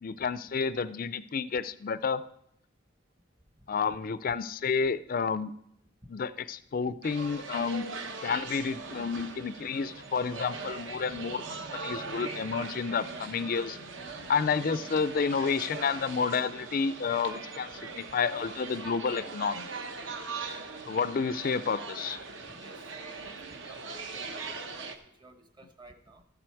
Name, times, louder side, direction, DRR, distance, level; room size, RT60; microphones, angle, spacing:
voice 1, 0.0-2.2 3.7-5.5 6.1-7.9 8.2-13.8 14.3-19.7 20.9-22.2, left 5 dB, 40° left, 15 dB, 0.4 m, -30 dB
sound 1, 7.0-25.0, right 4 dB, 60° right, 0.9 m, -41 dB
sound 2, 9.1-21.2, left 1 dB, 45° right, 2.3 m, -55 dB
voice 2, 22.5-22.9 23.5-26.2, right 2 dB, 20° right, 7 dB, 0.9 m, -53 dB
13.5 x 7.6 x 4.6 m, 0.75 s
head